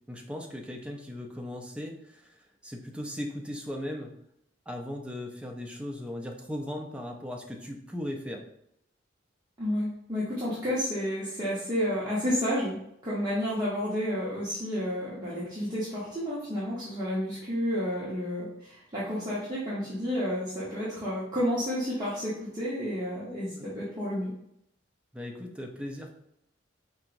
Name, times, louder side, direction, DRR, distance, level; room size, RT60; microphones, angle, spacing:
voice 1, 0.1-2.4 2.6-4.1 4.7-8.4 23.6-23.7 25.1-26.1, left 1 dB, 5° right, 1 dB, 0.5 m, -37 dB
voice 2, 9.6-12.8 13.0-24.3, equal, 20° right, -10 dB, 0.9 m, -31 dB
4.5 x 2.9 x 2.5 m, 0.75 s
head